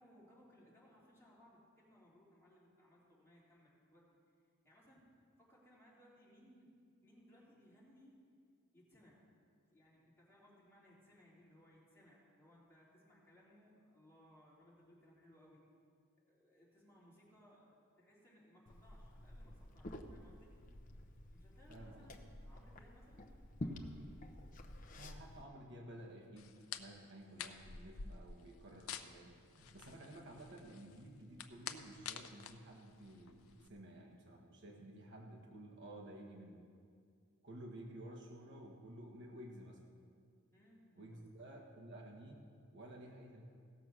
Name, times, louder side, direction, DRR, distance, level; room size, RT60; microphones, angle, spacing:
voice 1, 0.0-4.2 4.6-5.1 5.4-6.7 7.0-8.1 8.7-9.2 9.7-15.6 16.2-20.5 21.3-23.3 23.6-24.1 40.5-41.5, equal, 10° left, -7 dB, 3.1 m, -65 dB
Liquid, 18.7-25.4, left 1 dB, 40° left, 0.8 m, -50 dB
voice 2, 21.7-22.1 25.0-36.7 37.4-39.8 40.9-43.4, right 1 dB, 55° right, -1 dB, 1.4 m, -53 dB
sound 1, 26.4-33.7, left 7 dB, 70° left, 0.6 m, -50 dB
16.5 x 6.8 x 6.2 m, 2.2 s
head